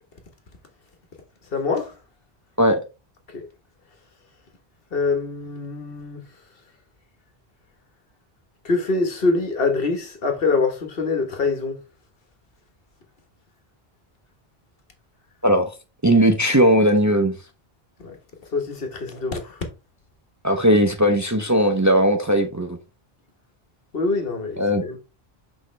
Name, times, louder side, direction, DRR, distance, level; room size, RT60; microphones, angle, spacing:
voice 1, 1.5-1.9 3.3-3.4 4.9-6.2 8.6-11.8 18.0-18.2 18.5-19.6 23.9-25.0, left 3 dB, 65° left, 1.5 m, -24 dB
voice 2, 15.4-15.7 16.0-17.3 20.4-22.8 24.6-25.0, equal, 20° right, 0.6 m, -18 dB
6.3 x 4.9 x 3.2 m
omnidirectional pair, 1.0 m